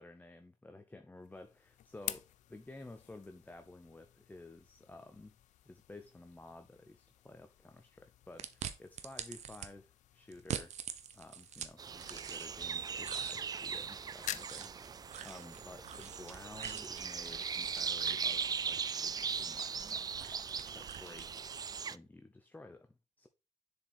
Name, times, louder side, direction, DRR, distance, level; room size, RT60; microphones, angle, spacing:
voice 1, 0.0-5.4 5.6-10.7 11.1-21.4 21.9-23.3, left 2 dB, 15° left, 0.8 m, -53 dB
sound 1, 1.2-18.2, left 12 dB, 80° left, 0.6 m, -51 dB
sound 2, 8.4-9.7 10.3-12.7 13.0-21.6, right 9 dB, 65° right, 0.9 m, -46 dB
sound 3, 11.8-22.0, right 6 dB, 30° right, 0.4 m, -39 dB
6.8 x 4.7 x 4.3 m
cardioid pair, 85°, 12 cm